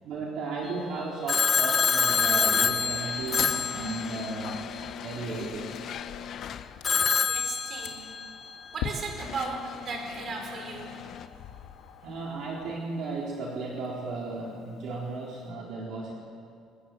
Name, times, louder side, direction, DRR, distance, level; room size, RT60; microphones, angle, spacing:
voice 1, 0.0-4.6 5.0-5.8 12.0-16.1, right 3 dB, 55° right, -2 dB, 4.1 m, -35 dB
Telephone, 1.3-4.6 6.8-8.4, left 6 dB, 25° left, 0.7 m, -26 dB
sound 1, 2.1-7.1 8.0-8.1 8.8-11.3, left 8 dB, 50° left, 1.0 m, -40 dB
sound 2, 3.2-12.8, left 9 dB, 85° left, 1.8 m, -43 dB
voice 2, 6.9-8.2 8.7-10.9, right 4 dB, 40° right, 3 dB, 5.3 m, -37 dB
27.0 x 21.5 x 7.8 m, 2.4 s
cardioid pair, 145°, 0 cm